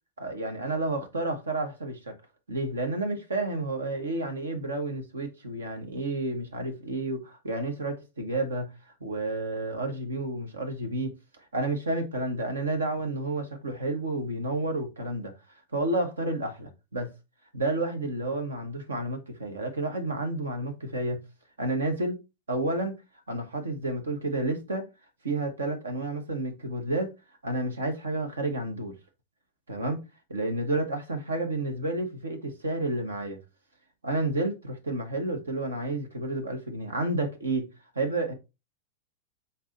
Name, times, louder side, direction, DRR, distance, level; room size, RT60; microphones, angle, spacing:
voice 1, 0.2-2.1 2.5-11.1 11.5-15.3 15.7-17.1 17.5-21.2 21.6-22.2 22.5-23.0 23.3-24.9 25.2-27.1 27.4-28.9 29.7-30.0 30.3-33.4 34.0-37.7 37.9-38.3, right 2 dB, 70° right, 1.3 m, -30 dB
6.0 x 4.1 x 4.1 m
figure-of-eight pair, 90°, 0 cm